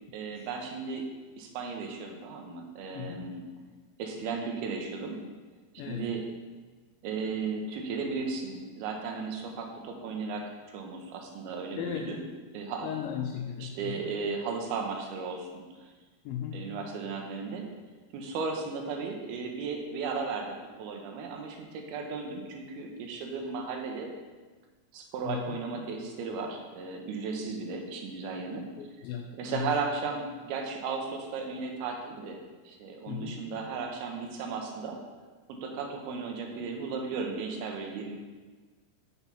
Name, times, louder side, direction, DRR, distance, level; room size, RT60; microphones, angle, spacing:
voice 1, 0.1-1.1 1.4-3.4 4.0-5.2 5.9-6.3 7.0-12.2 12.5-12.9 13.6-15.9 16.5-17.7 18.1-24.1 24.9-28.7 29.4-32.4 32.7-35.0 35.5-38.2, right 4 dB, 85° right, 2 dB, 2.7 m, -35 dB
voice 2, 3.0-3.3 5.8-6.1 11.8-12.2 12.8-14.1 16.3-16.7 25.2-25.6 28.8-29.7 33.1-33.5, left 8 dB, 85° left, 1 dB, 2.0 m, -36 dB
6.0 x 5.6 x 5.5 m, 1.3 s
omnidirectional pair, 4.5 m